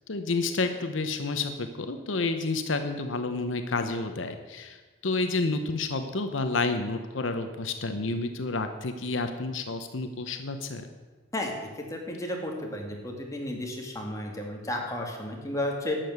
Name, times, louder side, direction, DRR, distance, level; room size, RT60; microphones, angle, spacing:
voice 1, 0.1-10.9, left 3 dB, 75° left, 7 dB, 0.9 m, -30 dB
voice 2, 11.9-16.0, left 1 dB, 15° left, 0 dB, 2.3 m, -33 dB
11.5 x 7.6 x 8.0 m, 1.4 s
head